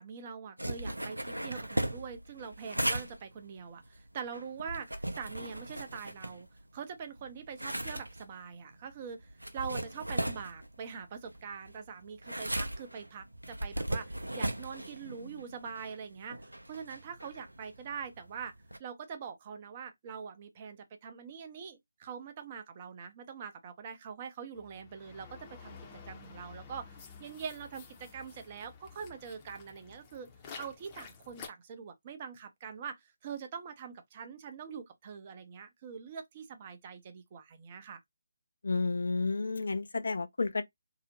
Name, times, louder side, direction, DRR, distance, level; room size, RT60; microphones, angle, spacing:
voice 1, 0.0-6.5 6.7-18.5 18.8-25.8 26.1-30.3 30.6-38.0, right 6 dB, 30° right, 0.5 m, -44 dB
sound 1, 0.6-6.8 7.2-18.8, right 1 dB, 85° right, 0.5 m, -38 dB
sound 2, 24.6-31.5, left 5 dB, 20° left, 0.6 m, -51 dB
voice 2, 38.6-40.6, left 3 dB, 60° left, 0.4 m, -31 dB
2.7 x 2.0 x 2.8 m
figure-of-eight pair, 150°, 0 cm